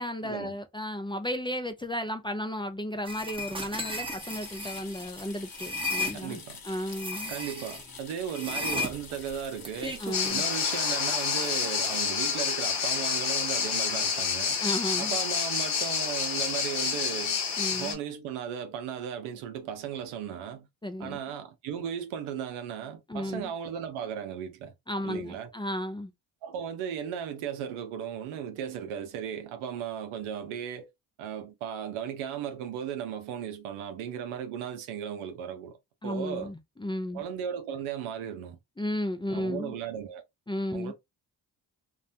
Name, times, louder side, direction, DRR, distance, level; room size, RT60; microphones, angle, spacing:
voice 1, 0.0-7.3 10.0-10.5 14.6-15.2 17.6-18.0 20.8-21.2 23.1-23.5 24.9-26.1 36.0-37.2 38.8-39.7 40.5-40.9, left 1 dB, 10° left, 0.4 m, -34 dB
sound 1, 3.1-6.2 6.9-7.8 8.3-10.3, left 2 dB, 10° right, 0.8 m, -34 dB
sound 2, 4.2-12.0, left 5 dB, 45° left, 1.1 m, -47 dB
voice 2, 6.1-6.6 7.3-10.0 10.3-14.6 15.0-17.4 17.7-20.7 21.0-24.7 25.0-25.5 26.4-30.9 31.2-35.8 36.0-36.5 37.1-38.6 39.3-40.2 40.7-40.9, right 8 dB, 85° right, 0.7 m, -36 dB
sound 3, 10.1-17.9, left 6 dB, 85° left, 0.9 m, -28 dB
2.6 x 2.0 x 2.6 m
supercardioid pair, 50°, 48 cm